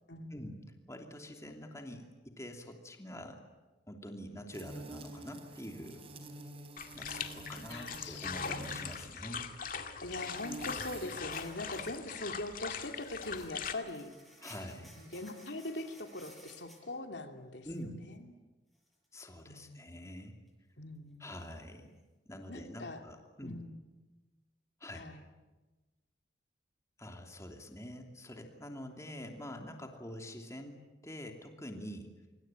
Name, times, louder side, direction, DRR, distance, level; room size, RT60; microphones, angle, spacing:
voice 1, 0.3-0.6 0.9-2.1 2.4-3.4 3.9-6.0 6.9-9.5 14.4-14.9 17.6-18.0 19.1-20.3 21.2-21.9 22.3-23.6 24.8-25.0 27.0-30.8 31.0-32.1, left 1 dB, 15° left, 3 dB, 2.9 m, -46 dB
sound 1, 4.5-9.1 10.1-11.2, right 2 dB, 30° right, 3.9 m, -48 dB
sound 2, 6.8-13.7, left 6 dB, 50° left, 2.1 m, -41 dB
voice 2, 7.7-8.3 10.0-14.1 15.0-17.7 18.0-18.2 19.5-19.8 20.8-21.3 22.5-23.0 23.4-23.8 24.9-25.3, left 2 dB, 75° left, 5 dB, 2.8 m, -42 dB
sound 3, 11.3-12.0 12.4-12.5 12.8-16.8 17.7-17.8 18.9-19.0 21.4-21.5, equal, ahead, 6.5 m, -56 dB
25.5 x 25.0 x 9.0 m, 1.2 s
head